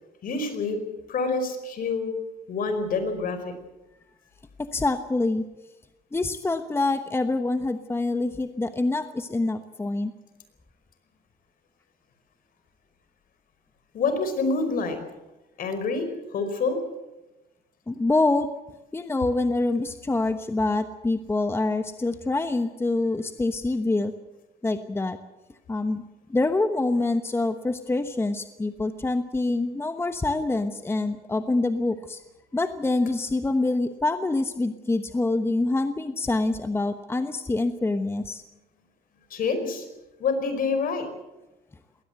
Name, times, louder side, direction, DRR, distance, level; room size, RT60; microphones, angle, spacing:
voice 1, 0.2-0.8 1.1-2.1 2.5-3.5 13.9-14.9 15.6-16.8 39.3-39.9 40.2-41.1, left 4 dB, 55° left, 9 dB, 5.0 m, -27 dB
voice 2, 4.6-5.5 6.1-10.1 17.9-18.5 18.9-24.1 24.6-25.2 25.7-26.0 26.3-32.2 32.5-38.4, left 2 dB, 15° left, 9 dB, 1.1 m, -26 dB
21.5 x 18.0 x 8.1 m, 1.0 s
cardioid pair, 110°, 17 cm